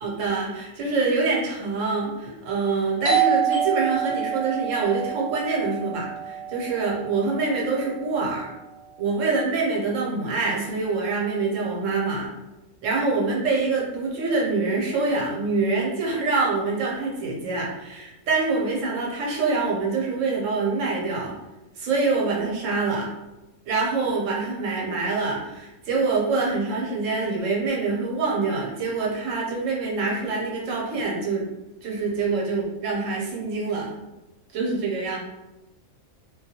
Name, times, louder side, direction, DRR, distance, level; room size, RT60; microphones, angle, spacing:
voice 1, 0.0-8.5 9.0-12.3 12.8-21.4 21.8-23.1 23.7-31.5 31.8-33.9 34.5-35.2, right 3 dB, 75° right, -3 dB, 1.0 m, -25 dB
Doorbell, 3.0-8.4, right 8 dB, 50° right, 0.4 m, -27 dB
2.3 x 2.2 x 2.7 m, 1.0 s
omnidirectional pair, 1.4 m